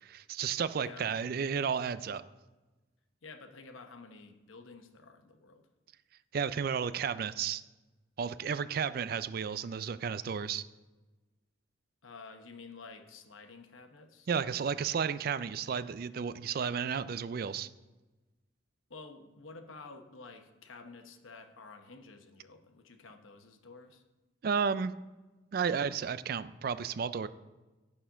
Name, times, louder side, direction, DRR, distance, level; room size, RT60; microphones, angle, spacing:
voice 1, 0.0-2.2 6.3-7.6 8.2-10.6 14.3-17.7 24.4-24.9 25.5-27.3, right 6 dB, 45° right, 14 dB, 0.3 m, -32 dB
voice 2, 3.2-5.6 12.0-14.3 18.9-24.0, left 4 dB, 75° left, 6 dB, 0.9 m, -51 dB
11.5 x 4.3 x 5.6 m, 1.2 s
head